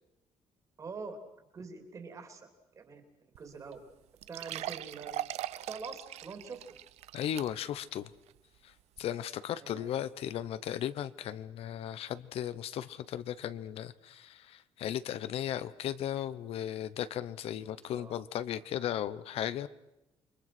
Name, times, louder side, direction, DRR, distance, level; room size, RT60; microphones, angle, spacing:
voice 1, 0.8-1.2 1.5-3.8 4.3-5.1 5.7-6.6 9.6-9.9 17.9-18.2, right 4 dB, 30° right, 7 dB, 3.2 m, -45 dB
sound 1, 3.3-3.4 3.7-3.8 4.2-7.8 8.3-8.4 9.0-9.1, right 14 dB, 80° right, 0.8 m, -40 dB
voice 2, 7.1-8.1 8.6-19.7, left 11 dB, 65° left, 15 dB, 1.0 m, -36 dB
28.5 x 23.5 x 6.1 m, 0.90 s
cardioid pair, 170°, 11 cm